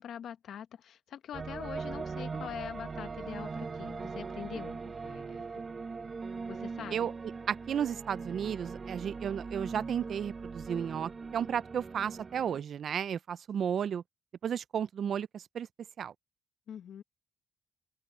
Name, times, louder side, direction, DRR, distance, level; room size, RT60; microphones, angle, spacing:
voice 1, 0.0-5.4 6.5-7.1 16.7-17.0, left 9 dB, 70° left, 1.2 m, -44 dB
sound 1, 1.3-12.6, right 4 dB, 35° right, 0.9 m, -40 dB
voice 2, 7.5-14.0 14.4-15.7 16.0-16.1, right 8 dB, 60° right, 0.4 m, -33 dB
open air
cardioid pair, 90°, 0 cm